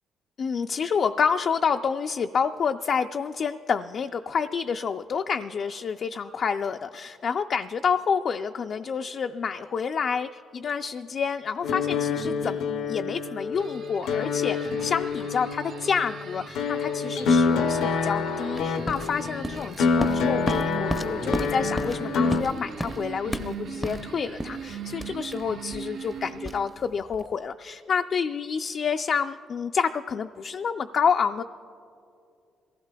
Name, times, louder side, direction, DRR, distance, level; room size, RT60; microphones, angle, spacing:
voice 1, 0.4-31.4, left 6 dB, 55° left, 6 dB, 0.3 m, -28 dB
sound 1, 11.6-22.4, left 5 dB, 90° left, 0.6 m, -27 dB
sound 2, 13.6-26.8, right 7 dB, 75° right, 0.9 m, -40 dB
sound 3, 18.5-27.3, equal, 5° left, 0.5 m, -34 dB
22.5 x 15.5 x 2.2 m, 2.6 s
cardioid pair, 90°, 0 cm